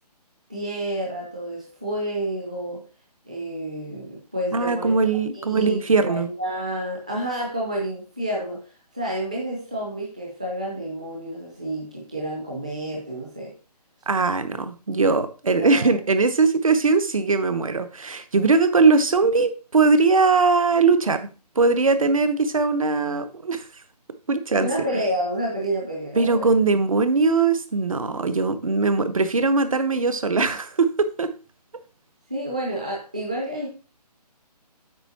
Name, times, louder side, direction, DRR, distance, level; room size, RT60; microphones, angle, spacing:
voice 1, 0.5-2.9 3.2-4.9 5.3-13.5 15.5-15.9 24.6-26.5 32.3-33.7, right 1 dB, 10° right, -2 dB, 0.6 m, -29 dB
voice 2, 4.5-6.3 14.1-21.2 21.5-23.6 24.3-24.7 26.2-31.3, right 4 dB, 55° right, 10 dB, 1.1 m, -20 dB
8.2 x 5.5 x 4.1 m, 0.33 s
hypercardioid pair, 180°, 21 cm